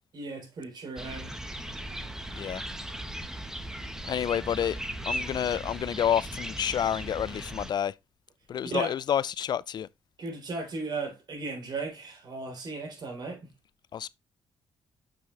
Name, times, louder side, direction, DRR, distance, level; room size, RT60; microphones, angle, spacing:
voice 1, 0.1-1.5 8.6-8.9 10.2-13.4, right 3 dB, 55° right, 3.9 m, -36 dB
sound 1, 1.0-7.7, right 1 dB, 5° right, 1.0 m, -37 dB
voice 2, 2.3-2.6 4.1-4.8 5.1-7.9 8.5-9.9 13.9-14.1, left 9 dB, 55° left, 0.4 m, -29 dB
6.7 x 6.1 x 3.2 m
cardioid pair, 85°, 9 cm